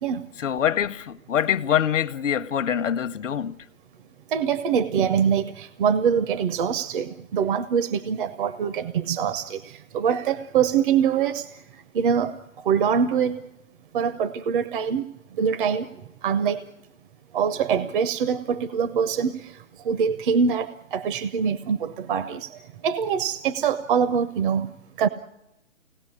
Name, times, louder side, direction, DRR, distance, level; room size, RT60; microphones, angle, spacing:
voice 1, 0.4-3.6, left 9 dB, 70° left, 1.0 m, -24 dB
voice 2, 4.3-11.5 11.9-12.4 12.6-13.5 13.9-15.1 15.4-15.9 16.2-16.6 17.3-19.5 19.8-22.6 22.8-24.7 25.0-25.1, right 7 dB, 40° right, 0.8 m, -24 dB
24.0 x 18.0 x 9.7 m
hypercardioid pair, 140°, 39 cm